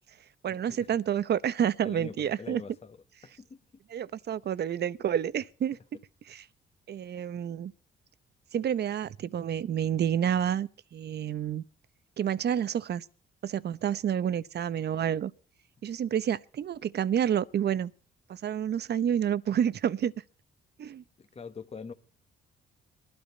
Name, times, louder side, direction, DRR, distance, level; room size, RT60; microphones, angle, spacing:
voice 1, 0.4-2.6 3.9-5.8 6.3-6.4 6.9-7.7 8.5-11.6 12.2-13.0 13.4-15.3 15.8-17.9 18.3-20.1 20.8-21.0, right 9 dB, 55° right, 0.9 m, -29 dB
voice 2, 1.8-3.0 3.2-3.6 21.2-21.9, left 5 dB, 30° left, 1.5 m, -43 dB
21.5 x 12.5 x 4.1 m
cardioid pair, 90°, 20 cm